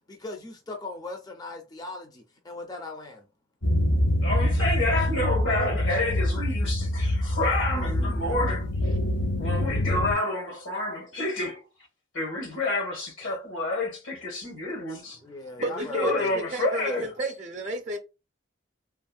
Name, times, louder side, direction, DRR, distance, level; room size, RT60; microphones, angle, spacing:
voice 1, 0.1-3.3 15.2-16.3, left 3 dB, 20° left, 0.4 m, -39 dB
sound 1, 3.6-10.1, left 1 dB, 65° left, 1.0 m, -25 dB
voice 2, 4.2-9.0 9.4-11.6 12.1-15.2 15.6-17.1, left 2 dB, 85° left, 1.4 m, -29 dB
voice 3, 15.6-18.0, right 1 dB, 35° right, 0.5 m, -31 dB
3.4 x 2.0 x 2.3 m
head